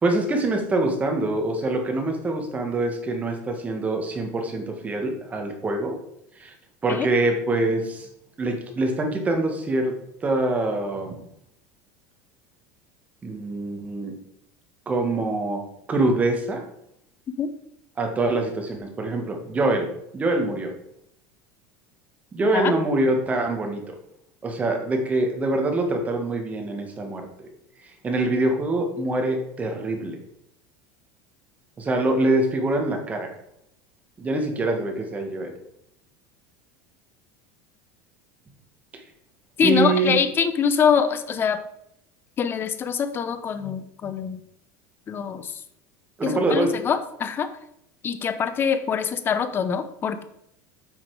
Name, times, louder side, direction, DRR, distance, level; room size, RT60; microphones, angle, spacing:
voice 1, 0.0-6.0 6.4-6.5 6.8-8.1 8.4-9.9 10.2-11.2 13.2-14.1 14.9-15.6 15.9-16.6 18.0-19.9 20.1-20.7 22.3-24.0 24.4-27.3 28.0-30.2 31.8-33.3 34.2-35.5 39.6-40.2 46.2-46.7, right 2 dB, 15° right, 3 dB, 1.8 m, -24 dB
voice 2, 39.6-41.6 42.4-44.4 45.1-45.6 46.2-47.5 48.0-50.2, left 7 dB, 25° left, 10 dB, 0.9 m, -24 dB
9.3 x 5.8 x 4.9 m, 0.76 s
supercardioid pair, 150°, 9 cm